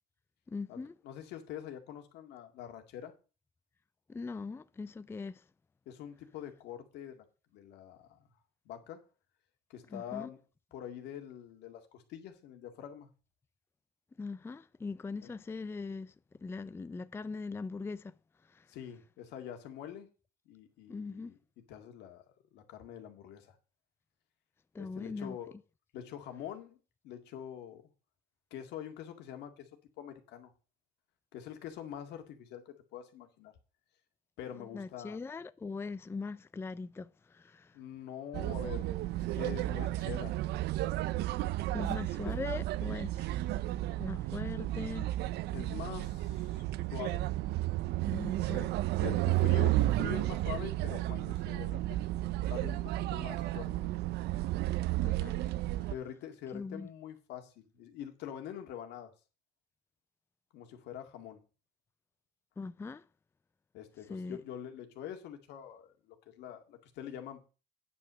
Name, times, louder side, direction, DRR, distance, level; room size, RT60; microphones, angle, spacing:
voice 1, 0.5-0.9 4.1-5.4 9.9-10.3 14.2-16.1 16.4-18.1 18.5-18.7 20.9-21.3 24.7-25.4 34.6-37.8 41.2-41.3 41.7-43.3 44.0-45.1 48.1-48.7 49.0-49.4 55.0-55.4 55.8-55.9 56.5-56.9 62.6-63.1 64.1-64.4, left 4 dB, 15° left, 0.4 m, -41 dB
voice 2, 1.0-3.1 5.9-7.3 7.5-8.2 8.7-9.0 9.7-10.4 10.7-13.1 15.2-15.3 18.7-20.1 20.5-21.4 21.7-22.2 22.5-23.6 24.8-25.5 25.9-26.8 27.0-27.8 28.5-29.7 30.0-30.5 31.3-33.5 34.4-35.2 37.7-40.4 41.7-42.0 42.2-42.4 45.5-46.6 46.9-47.2 49.0-52.0 52.5-53.9 55.9-59.1 60.5-61.4 63.7-67.5, left 10 dB, 85° left, 2.0 m, -45 dB
sound 1, 38.3-55.9, right 16 dB, 75° right, 0.5 m, -32 dB
9.3 x 5.8 x 6.2 m
cardioid pair, 110°, 17 cm